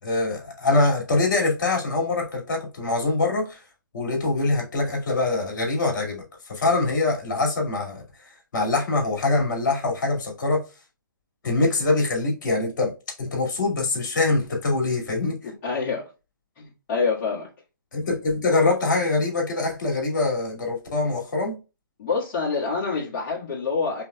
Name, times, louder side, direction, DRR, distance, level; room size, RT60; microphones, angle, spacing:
voice 1, 0.0-3.6 3.9-8.0 8.5-10.6 11.4-12.9 13.2-15.4 17.9-21.6, left 3 dB, 60° left, 2.3 m, -24 dB
voice 2, 15.4-16.0 16.6-17.5 22.0-24.0, left 4 dB, 40° left, 1.7 m, -26 dB
5.1 x 3.2 x 2.3 m
figure-of-eight pair, 135°, 11 cm